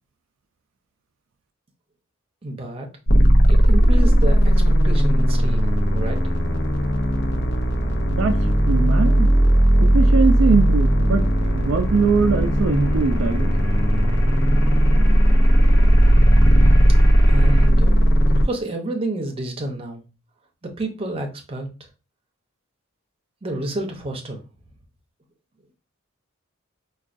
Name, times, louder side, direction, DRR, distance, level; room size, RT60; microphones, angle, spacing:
voice 1, 2.4-2.9 3.5-4.5 4.8-6.3 17.3-18.0 18.3-20.0 20.6-21.7 23.4-24.4, right 2 dB, 30° right, 2 dB, 0.7 m, -29 dB
sound 1, 3.1-18.4, right 1 dB, 55° left, 0.6 m, -17 dB
voice 2, 8.1-9.3 9.8-13.5, right 4 dB, 65° right, 7 dB, 0.4 m, -22 dB
sound 2, 10.5-17.7, equal, 15° left, 0.6 m, -29 dB
4.4 x 2.3 x 2.5 m, 0.32 s
head